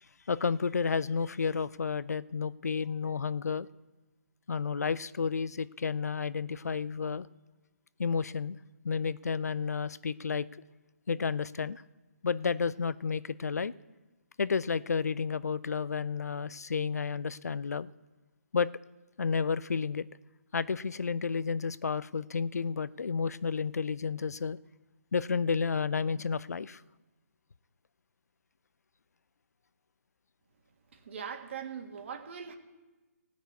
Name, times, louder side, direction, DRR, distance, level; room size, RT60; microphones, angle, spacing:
voice 1, 0.3-3.7 4.5-7.3 8.0-8.6 8.8-10.5 11.1-11.8 12.2-13.7 14.4-17.9 18.5-18.7 19.2-20.1 20.5-24.6 25.1-26.8, left 5 dB, 80° left, 18 dB, 0.5 m, -31 dB
voice 2, 30.9-32.6, right 7 dB, 50° right, 4 dB, 1.9 m, -41 dB
16.0 x 6.2 x 8.1 m, 1.2 s
hypercardioid pair, 155°, 8 cm